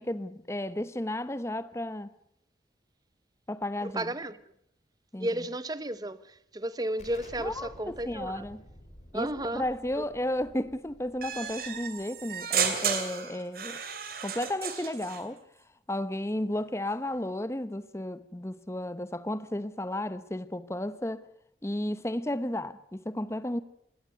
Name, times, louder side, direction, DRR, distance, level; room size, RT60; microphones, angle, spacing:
voice 1, 0.0-2.1 3.5-4.1 5.1-5.3 7.4-8.6 9.1-13.8 14.2-15.4 15.9-21.2 21.6-23.6, left 1 dB, 15° left, 0.8 m, -33 dB
voice 2, 3.8-4.4 5.2-8.5 9.1-9.6 10.0-10.1, right 1 dB, 20° right, 0.8 m, -33 dB
Explosion, 7.0-12.4, left 1 dB, 40° left, 3.1 m, -52 dB
sound 1, 11.2-15.2, right 7 dB, 55° right, 2.8 m, -32 dB
20.5 x 17.0 x 8.0 m
head